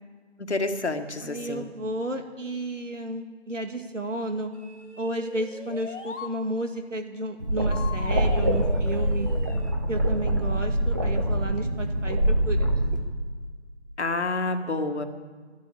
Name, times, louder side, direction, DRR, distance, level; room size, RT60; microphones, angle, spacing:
voice 1, 0.4-1.6 14.0-15.1, left 2 dB, 65° left, 7 dB, 1.7 m, -28 dB
voice 2, 1.2-4.5 5.0-9.3 9.9-12.8, right 2 dB, 85° right, 5 dB, 2.2 m, -32 dB
sound 1, 4.5-6.3 7.7-9.8, left 4 dB, 80° left, 1.6 m, -39 dB
sound 2, 7.4-13.0, right 1 dB, 15° right, 0.7 m, -24 dB
12.0 x 11.5 x 8.5 m, 1.5 s
figure-of-eight pair, 160°, 36 cm